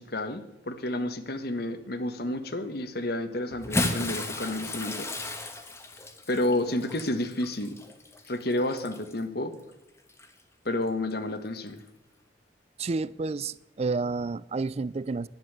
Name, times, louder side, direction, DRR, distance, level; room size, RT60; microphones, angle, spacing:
voice 1, 0.0-5.1 6.3-7.8 8.3-9.5 10.6-11.8, left 1 dB, 55° left, 1.3 m, -30 dB
Bathtub (filling or washing) / Splash splatter, 3.5-9.2 10.1-10.3 11.7-11.8, left 2 dB, 15° left, 1.3 m, -34 dB
voice 2, 12.8-15.3, right 3 dB, 35° right, 0.4 m, -30 dB
11.0 x 10.5 x 8.0 m
head